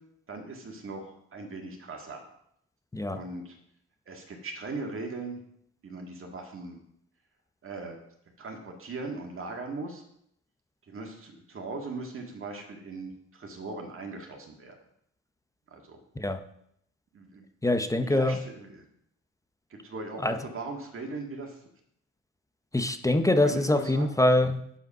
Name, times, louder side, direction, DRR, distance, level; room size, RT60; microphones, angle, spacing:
voice 1, 0.3-2.2 3.1-3.6 4.1-5.4 5.8-6.8 7.6-8.0 8.4-10.0 10.9-14.8 15.7-16.0 17.1-17.5 17.8-18.8 19.7-21.7 23.4-24.1, right 3 dB, 45° right, 2 dB, 2.0 m, -39 dB
voice 2, 17.6-18.4 20.2-20.4 22.7-24.8, left 1 dB, 10° left, 8 dB, 0.7 m, -24 dB
8.0 x 5.1 x 5.5 m, 0.72 s
cardioid pair, 90°, 30 cm